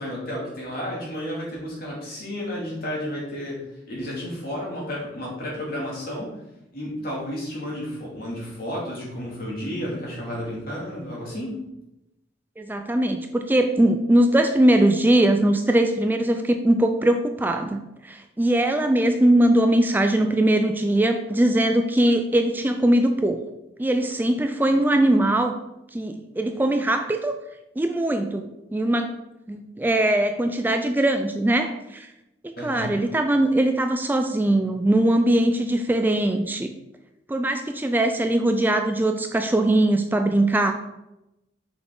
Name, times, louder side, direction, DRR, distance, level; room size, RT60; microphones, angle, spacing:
voice 1, 0.0-6.4 6.7-11.6 32.6-33.0, equal, 55° left, -4 dB, 2.6 m, -32 dB
voice 2, 12.6-23.4 23.8-25.6 25.9-27.3 27.8-29.1 29.5-32.1 32.4-36.7 37.3-40.7, right 1 dB, 10° right, 6 dB, 0.3 m, -21 dB
5.9 x 5.8 x 3.7 m, 0.91 s
head